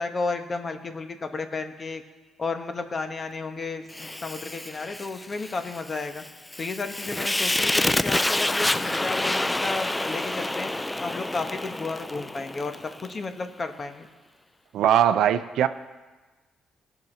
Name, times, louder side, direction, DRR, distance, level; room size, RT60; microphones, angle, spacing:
voice 1, 0.0-2.0 2.4-6.2 6.6-10.7 11.0-14.1, left 3 dB, 35° left, 7 dB, 1.0 m, -32 dB
Fire, 3.9-13.1, left 1 dB, 15° left, 0.3 m, -28 dB
voice 2, 14.7-15.7, right 10 dB, 80° right, 12 dB, 0.5 m, -20 dB
18.0 x 6.0 x 4.4 m, 1.3 s
cardioid pair, 90°, 0 cm